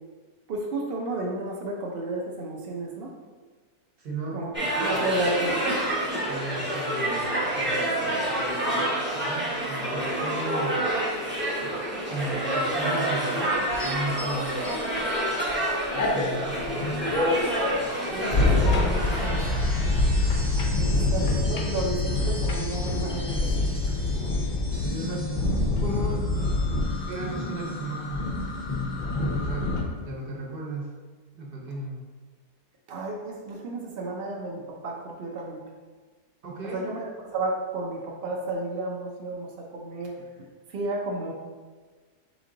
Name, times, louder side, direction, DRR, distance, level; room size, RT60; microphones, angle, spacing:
voice 1, 0.5-3.1 4.3-4.5 4.8-5.6 18.1-19.4 20.8-23.3 32.9-35.6 36.6-40.2 40.7-41.3, right 2 dB, 85° right, -1 dB, 0.5 m, -32 dB
voice 2, 4.0-5.2 6.2-10.8 11.6-11.7 12.1-14.8 15.3-15.4 15.9-17.3 20.8-21.1 24.4-25.3 25.8-26.2 27.1-28.3 29.1-29.7 30.0-30.9 31.3-32.0 36.4-36.9, right 2 dB, 45° right, -2 dB, 0.8 m, -36 dB
sound 1, 4.5-19.8, right 1 dB, 10° right, 0.5 m, -28 dB
sound 2, 13.5-15.5 15.9-29.8, left 2 dB, 60° left, 0.5 m, -26 dB
sound 3, 18.0-28.1 28.4-28.8, left 1 dB, 20° left, 0.8 m, -41 dB
4.1 x 3.1 x 3.8 m, 1.4 s
omnidirectional pair, 1.7 m